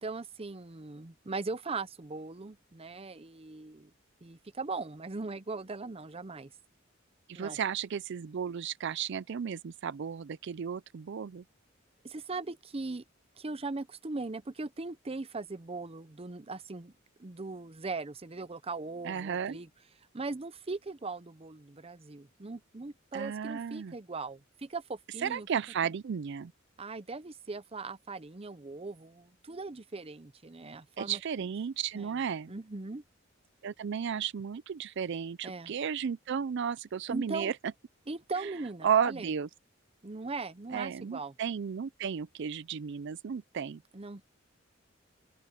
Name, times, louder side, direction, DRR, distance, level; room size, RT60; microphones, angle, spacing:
voice 1, 0.0-3.9 4.2-6.5 7.3-7.6 12.0-13.0 13.4-16.9 17.2-19.7 20.1-25.5 26.8-31.2 31.9-32.2 32.5-33.0 35.4-35.7 37.1-37.5 38.1-39.3 40.0-41.3 43.9-44.2, right 3 dB, 30° right, 0.7 m, -39 dB
voice 2, 7.3-11.4 19.0-19.6 23.1-23.9 25.2-26.5 31.0-32.5 33.6-37.5 38.8-39.5 40.7-43.8, right 7 dB, 60° right, 0.4 m, -33 dB
open air
head